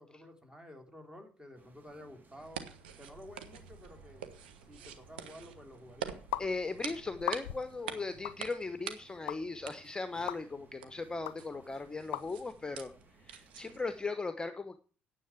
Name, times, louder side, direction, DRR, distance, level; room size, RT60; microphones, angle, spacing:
voice 1, 0.0-2.7 3.0-4.3 4.7-6.2, left 1 dB, 15° right, 4 dB, 3.1 m, -52 dB
sound 1, 1.5-14.0, right 3 dB, 35° right, 2.7 m, -62 dB
sound 2, 2.4-13.9, right 8 dB, 75° right, 1.2 m, -47 dB
sound 3, 6.3-6.5 7.2-7.7 8.3-8.4 9.3-9.4 10.3-10.4 11.3-11.4 12.1-12.3, left 15 dB, 70° left, 0.5 m, -36 dB
voice 2, 6.4-12.9 13.2-14.8, left 3 dB, 15° left, 10 dB, 0.9 m, -38 dB
9.9 x 7.6 x 8.3 m, 0.42 s
figure-of-eight pair, 50°, 5 cm